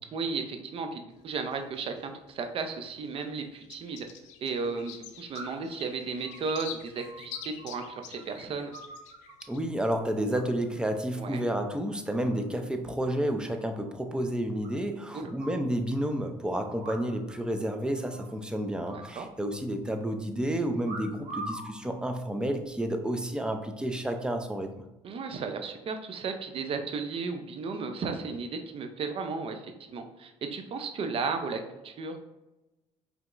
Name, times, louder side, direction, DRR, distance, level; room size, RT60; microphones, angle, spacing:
voice 1, 0.1-4.1 4.4-8.7 11.2-11.4 15.1-15.3 18.9-19.3 25.0-32.2, right 4 dB, 50° right, 6 dB, 0.6 m, -34 dB
sound 1, 1.1-2.6 3.0-9.6, left 9 dB, 80° left, 0.5 m, -47 dB
sound 2, 3.5-3.6 5.3-5.8 6.2-8.2 8.5-9.5 10.3-10.8 11.1-11.5 11.9-12.5 12.7-12.8 13.1-13.2 13.4-13.5 13.8-13.9 14.6-15.7 16.7-17.4 17.6-17.7 18.0-18.4 18.8-19.8 20.8-21.7 22.4-22.8, right 2 dB, 80° right, 1.4 m, -44 dB
voice 2, 9.5-24.7, right 1 dB, 5° right, 5 dB, 0.5 m, -30 dB
4.8 x 3.4 x 2.5 m, 1.0 s
cardioid pair, 90°, 12 cm